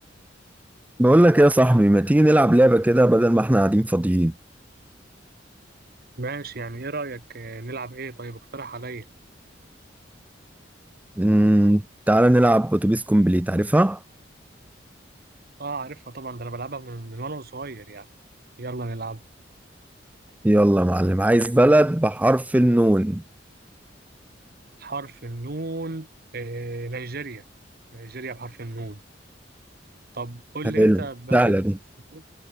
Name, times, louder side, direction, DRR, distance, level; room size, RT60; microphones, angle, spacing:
voice 1, 1.0-4.3 11.2-14.0 20.4-23.2 30.8-31.0 31.3-31.7, right 1 dB, 10° right, 0.4 m, -18 dB
voice 2, 6.2-9.0 15.6-18.1 18.6-19.2 24.8-27.4 27.9-29.0 30.1-31.6 32.1-32.2, right 3 dB, 60° right, 1.4 m, -34 dB
head